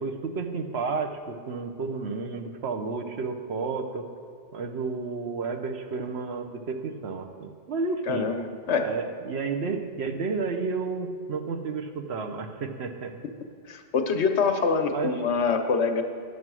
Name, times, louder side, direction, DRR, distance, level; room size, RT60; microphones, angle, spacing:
voice 1, 0.0-4.0 4.5-8.3 8.8-13.1 14.9-15.1, right 4 dB, 65° right, 4 dB, 1.1 m, -31 dB
voice 2, 8.1-8.9 13.7-16.0, left 5 dB, 70° left, 6 dB, 1.1 m, -25 dB
11.0 x 7.4 x 6.1 m, 2.2 s
omnidirectional pair, 1.2 m